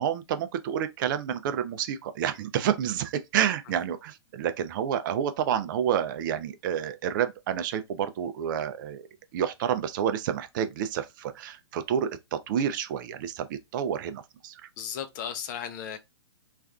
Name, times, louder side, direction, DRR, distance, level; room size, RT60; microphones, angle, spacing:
voice 1, 0.0-9.1 9.3-14.6, right 9 dB, 45° right, 0.4 m, -29 dB
voice 2, 14.8-16.0, left 8 dB, 40° left, 0.6 m, -35 dB
3.3 x 2.4 x 2.2 m
hypercardioid pair, 135°, 15 cm